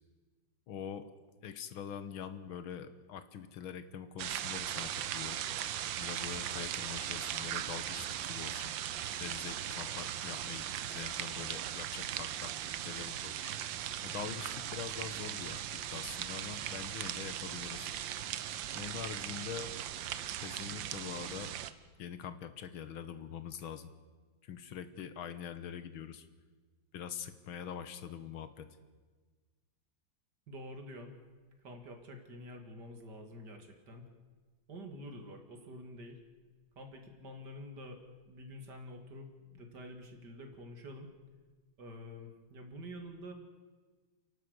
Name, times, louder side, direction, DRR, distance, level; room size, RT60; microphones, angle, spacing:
voice 1, 0.7-1.1 1.4-5.4 6.0-8.7 9.2-13.5 14.0-17.9 18.7-19.7 20.4-21.6 22.0-23.9 24.4-26.3 26.9-28.7, left 8 dB, 90° left, 12 dB, 2.0 m, -44 dB
sound 1, 4.2-21.7, right 11 dB, 75° right, 1.5 m, -39 dB
voice 2, 30.5-31.2 31.6-34.0 34.7-36.2 36.8-38.0 38.3-41.1 41.8-43.3, equal, 55° right, 5 dB, 2.9 m, -48 dB
29.0 x 11.5 x 8.1 m, 1.4 s
omnidirectional pair, 2.2 m